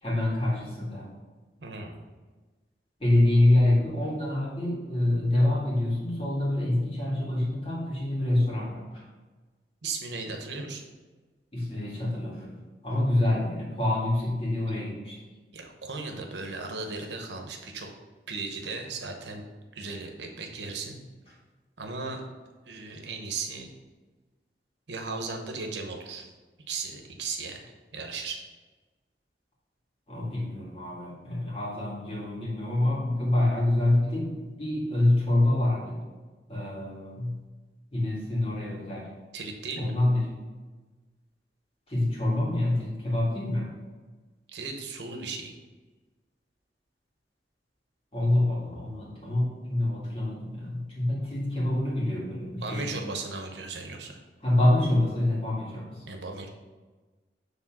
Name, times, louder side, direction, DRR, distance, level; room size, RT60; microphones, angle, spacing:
voice 1, 0.0-1.1 3.0-8.8 11.5-15.2 30.1-36.0 36.5-37.4 37.9-39.1 39.8-40.3 41.9-43.7 48.1-53.0 54.4-56.0, left 1 dB, 30° left, -5 dB, 2.0 m, -26 dB
voice 2, 1.6-2.0 9.8-10.8 15.5-17.9 18.3-19.5 19.7-21.0 21.8-22.3 22.7-23.7 24.9-26.3 26.7-27.6 27.9-28.4 39.3-39.9 44.5-45.5 52.6-54.2 56.1-56.5, right 4 dB, 80° right, 3 dB, 0.9 m, -36 dB
7.1 x 3.4 x 5.9 m, 1.3 s
head